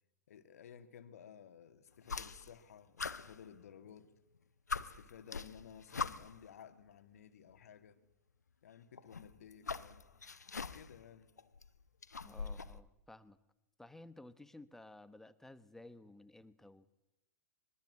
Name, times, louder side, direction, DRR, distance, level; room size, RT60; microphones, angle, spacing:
voice 1, 0.3-4.1 4.8-8.0 8.6-10.1 10.7-11.3, left 8 dB, 60° left, 2.0 m, -56 dB
sound 1, 2.0-2.6 3.0-4.0 4.4-4.5 4.7-6.5 7.5-7.6 9.0-11.0 11.4-12.8, left 5 dB, 80° left, 1.0 m, -42 dB
voice 2, 12.2-13.4 13.8-16.9, left 2 dB, 5° left, 1.2 m, -55 dB
24.5 x 22.5 x 8.5 m
figure-of-eight pair, 100°, 9 cm